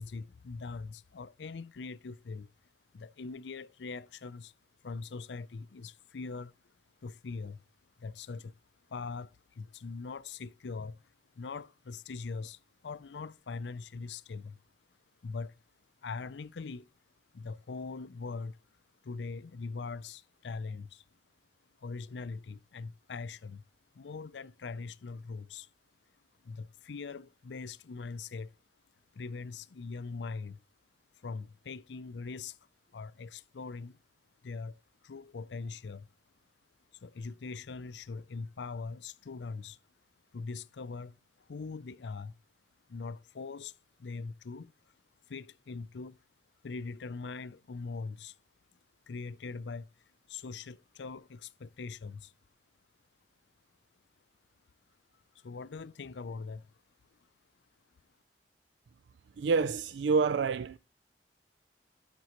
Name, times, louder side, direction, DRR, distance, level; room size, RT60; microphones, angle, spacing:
voice 1, 0.0-2.5 2.9-4.5 4.8-6.6 7.0-7.6 8.0-8.5 8.9-14.6 15.2-15.6 16.0-16.9 17.3-18.6 19.0-21.0 21.8-23.6 23.9-25.7 26.4-28.5 29.1-30.6 31.2-32.6 32.9-34.0 34.4-34.8 35.0-36.1 36.9-39.8 40.3-42.3 42.9-44.7 45.3-46.2 46.6-48.4 49.1-52.3 55.3-56.8 57.1-57.2, left 4 dB, 85° left, 0.5 m, -42 dB
voice 2, 59.4-60.8, right 4 dB, 90° right, 0.4 m, -27 dB
12.0 x 6.0 x 3.0 m
head